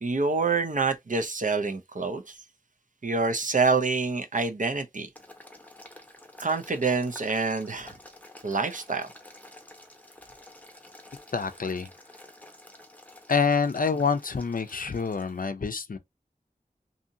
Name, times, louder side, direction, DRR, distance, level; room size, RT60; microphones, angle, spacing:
voice 1, 0.0-2.4 3.0-5.1 6.4-7.9 8.4-9.1, right 4 dB, 55° right, 0.5 m, -27 dB
Boiling, 5.1-15.5, left 1 dB, 10° left, 0.8 m, -50 dB
voice 2, 11.3-11.9 13.3-16.0, left 5 dB, 65° left, 0.4 m, -27 dB
2.7 x 2.7 x 2.5 m
wide cardioid pair, 40°, 16 cm